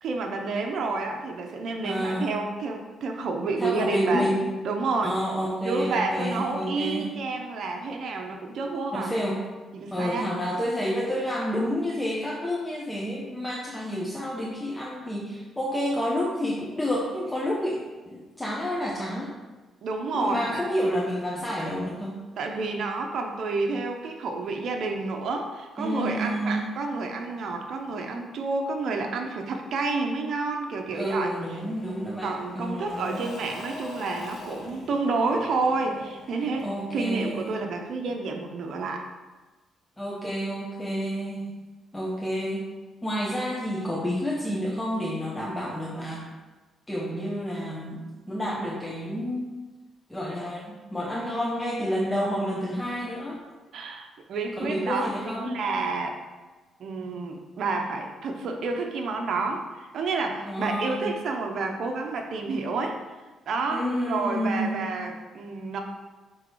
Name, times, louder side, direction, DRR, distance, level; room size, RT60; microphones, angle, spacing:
voice 1, 0.0-4.3 4.6-5.1 5.6-9.1 9.7-10.3 19.8-20.6 22.4-31.3 32.2-39.1 53.7-56.2 56.8-63.0 63.5-65.8, right 3 dB, 65° right, 3 dB, 0.8 m, -29 dB
voice 2, 1.8-2.4 3.6-4.4 5.0-7.1 8.9-9.4 9.9-19.3 20.1-22.2 25.8-26.8 30.9-33.2 36.5-37.6 40.0-41.5 41.9-42.7 43.0-46.2 46.9-49.6 50.1-53.4 54.6-55.6 60.5-61.1 63.7-64.9, equal, 10° left, -4 dB, 0.9 m, -29 dB
Engine / Mechanisms / Drill, 31.3-38.0, left 3 dB, 75° left, 1.6 m, -44 dB
6.6 x 3.1 x 4.7 m, 1.2 s
cardioid pair, 90°, 0 cm